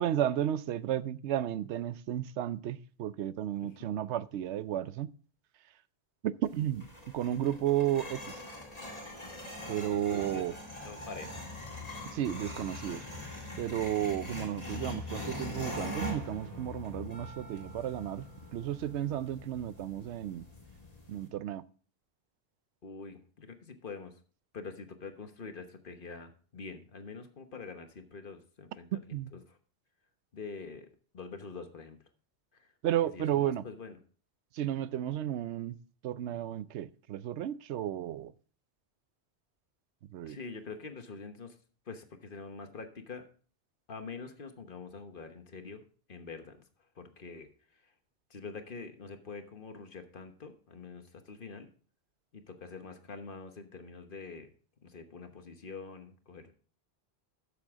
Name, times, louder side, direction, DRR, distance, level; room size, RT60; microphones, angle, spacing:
voice 1, 0.0-5.1 6.2-6.9 7.1-8.3 9.7-10.5 12.1-13.0 13.6-18.3 18.5-20.4 21.1-21.6 28.9-29.3 32.8-33.6 34.5-35.8 36.0-38.3 40.1-40.4, right 11 dB, 85° right, 0.9 m, -33 dB
sound 1, 6.4-21.3, left 2 dB, 35° left, 2.3 m, -43 dB
voice 2, 9.9-10.4 10.8-11.7 22.8-24.1 24.5-29.0 29.3-29.6 30.3-30.9 31.1-32.0 32.5-32.7 33.1-34.0 40.2-41.5 41.9-43.3 43.9-45.8 46.1-46.6 47.0-47.5 48.3-51.7 52.3-54.5 54.8-56.5, left 4 dB, 50° left, 1.3 m, -45 dB
12.5 x 6.8 x 3.6 m
omnidirectional pair, 1.1 m